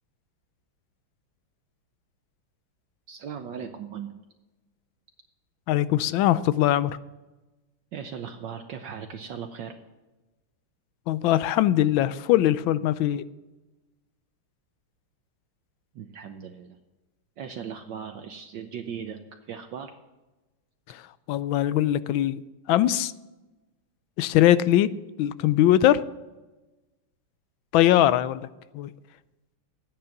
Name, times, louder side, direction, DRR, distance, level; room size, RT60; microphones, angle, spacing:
voice 1, 3.1-4.2 7.9-9.8 15.9-16.8 17.4-19.9, right 7 dB, 65° right, 1.3 m, -38 dB
voice 2, 5.7-7.0 11.1-13.2 20.9-21.0 21.3-22.4 22.7-23.1 24.2-24.9 25.2-26.0 27.7-28.5 28.7-28.9, left 13 dB, 75° left, 1.2 m, -21 dB
13.5 x 9.4 x 5.9 m
omnidirectional pair, 2.4 m